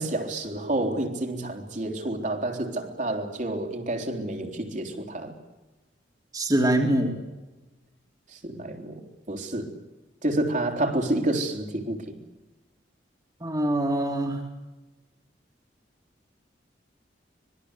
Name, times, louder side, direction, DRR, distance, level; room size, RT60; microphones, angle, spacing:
voice 1, 0.0-5.3 8.3-9.0 9.3-9.7 10.2-12.2, right 1 dB, 45° right, 4 dB, 3.6 m, -29 dB
voice 2, 6.3-7.2 13.4-14.4, right 1 dB, 20° right, 2 dB, 2.9 m, -24 dB
25.5 x 21.5 x 8.2 m, 1.1 s
head